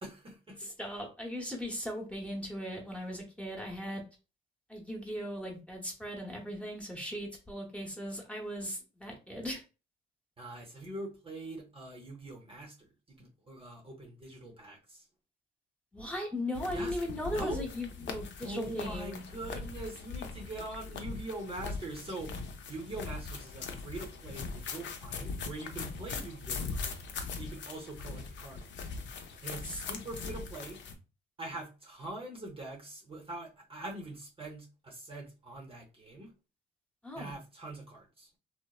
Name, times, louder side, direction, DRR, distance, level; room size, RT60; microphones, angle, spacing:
voice 1, 0.0-0.7 10.4-15.1 16.7-16.9 17.3-17.6 18.4-22.4 22.7-27.1 27.4-28.9 29.4-30.8 31.4-36.3 37.2-38.3, right 2 dB, 30° right, 0.7 m, -43 dB
voice 2, 0.6-4.0 4.7-9.6 15.9-19.2 29.6-29.8 37.0-37.3, equal, 5° left, 0.9 m, -38 dB
sound 1, 16.5-31.0, left 4 dB, 65° left, 0.5 m, -41 dB
2.9 x 2.0 x 2.3 m
cardioid pair, 90°, 20 cm